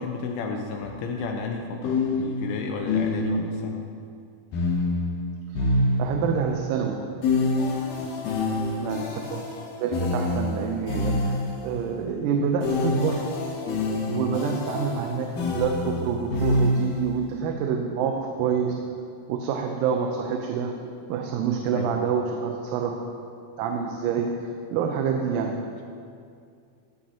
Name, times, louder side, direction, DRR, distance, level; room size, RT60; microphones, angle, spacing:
voice 1, 0.0-3.9 8.0-8.4 14.1-14.3 21.8-22.1, left 4 dB, 80° left, 3 dB, 3.0 m, -33 dB
sound 1, 0.8-1.0 1.8-3.6 4.5-6.4 7.2-11.7 12.6-17.1, left 2 dB, 65° left, 2.6 m, -26 dB
voice 2, 6.0-7.0 8.8-9.5 9.8-13.3 14.1-15.3 15.5-18.8 19.3-20.8 21.1-23.0 23.6-25.6, right 6 dB, 90° right, 2 dB, 3.6 m, -27 dB
15.5 x 15.0 x 2.9 m, 2.3 s
omnidirectional pair, 6.0 m